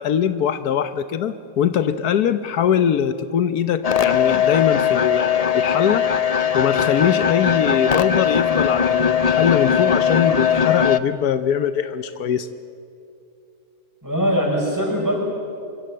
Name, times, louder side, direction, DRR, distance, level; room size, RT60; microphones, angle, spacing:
voice 1, 0.0-6.1 6.5-12.5, left 8 dB, 85° left, 12 dB, 1.3 m, -22 dB
sound 1, 3.8-11.0, left 7 dB, 55° left, 0.4 m, -19 dB
voice 2, 14.0-15.2, equal, 10° right, -2 dB, 6.0 m, -21 dB
25.0 x 24.0 x 7.6 m, 2.6 s
omnidirectional pair, 1.6 m